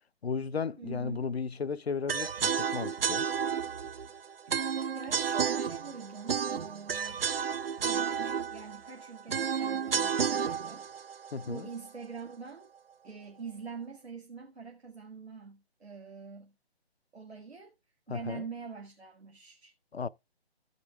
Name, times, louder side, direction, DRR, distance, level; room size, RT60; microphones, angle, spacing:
voice 1, 0.2-3.3 11.3-11.7 18.1-18.4 19.9-20.1, left 5 dB, 70° left, 0.6 m, -34 dB
voice 2, 0.8-1.3 4.9-7.2 7.8-10.9 11.4-12.7 13.0-16.5 17.1-17.7 18.1-19.7, right 5 dB, 80° right, 2.1 m, -44 dB
sound 1, 2.1-12.2, right 7 dB, 60° right, 0.5 m, -32 dB
15.0 x 5.1 x 3.3 m
figure-of-eight pair, 145°, 32 cm